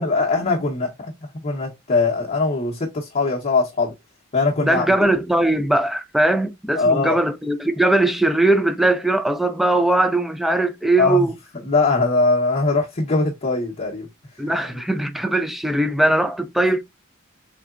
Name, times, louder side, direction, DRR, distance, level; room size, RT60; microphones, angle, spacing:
voice 1, 0.0-3.9 4.3-4.9 6.7-7.2 11.0-11.3 11.6-14.1 14.6-14.7, left 3 dB, 35° left, 0.7 m, -21 dB
voice 2, 4.6-11.3 14.4-16.8, right 1 dB, ahead, 0.3 m, -20 dB
3.7 x 3.2 x 2.3 m
head